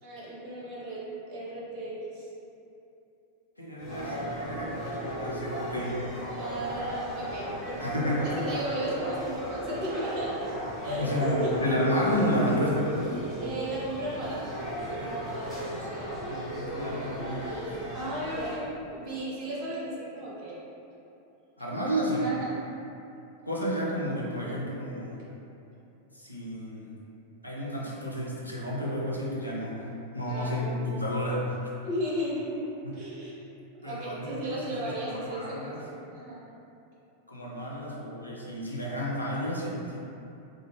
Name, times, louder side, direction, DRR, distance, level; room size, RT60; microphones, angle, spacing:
voice 1, 0.0-1.0 1.3-2.2 3.8-4.8 6.3-7.8 8.2-10.5 10.8-11.6 13.4-14.4 14.7-15.5 15.8-16.1 17.9-20.6 22.1-22.5 30.3-31.0 31.8-32.6 32.9-33.3 33.8-36.4, right 1 dB, 45° right, -6 dB, 0.7 m, -35 dB
voice 2, 3.6-6.1 7.8-8.3 10.8-13.3 15.0-15.2 16.3-17.9 21.6-22.3 23.5-25.2 26.1-26.9 27.4-29.9 30.1-31.6 32.8-32.9 33.8-35.8 37.3-40.1, equal, 85° left, -5 dB, 0.4 m, -31 dB
sound 1, 3.8-18.6, equal, 20° left, 1.0 m, -36 dB
2.3 x 2.3 x 3.1 m, 2.8 s
figure-of-eight pair, 90°, 0 cm